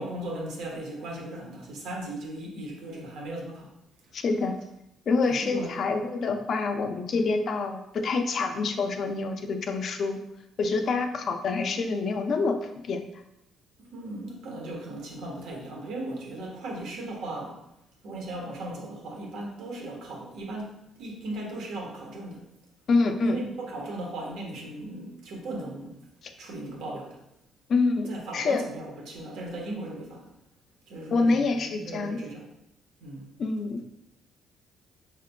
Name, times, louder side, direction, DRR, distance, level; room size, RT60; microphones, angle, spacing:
voice 1, 0.0-3.7 5.2-5.8 13.8-17.6 18.0-22.4 23.2-26.0 26.4-27.2 28.1-30.3 30.9-32.5 33.0-33.3, right 1 dB, 75° right, -1 dB, 1.2 m, -37 dB
voice 2, 4.1-4.6 5.1-10.2 10.6-13.0 22.9-23.4 27.7-28.6 31.1-32.2 33.4-33.8, left 3 dB, 45° left, 6 dB, 0.4 m, -26 dB
5.7 x 3.6 x 2.2 m, 0.85 s
cardioid pair, 150°, 0 cm